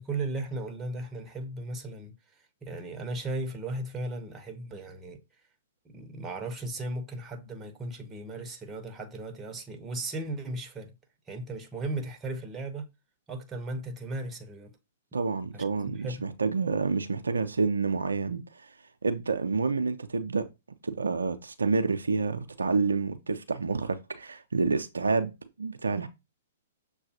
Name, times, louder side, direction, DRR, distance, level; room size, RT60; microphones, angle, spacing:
voice 1, 0.0-5.2 5.8-10.9 11.3-12.9 13.3-14.7 15.5-15.7 15.9-16.3, right 2 dB, 20° right, 0.7 m, -36 dB
voice 2, 15.1-18.7 19.0-20.5 20.8-25.3 25.6-26.1, right 4 dB, 75° right, 0.4 m, -28 dB
6.5 x 2.3 x 2.7 m
figure-of-eight pair, 115°, 0 cm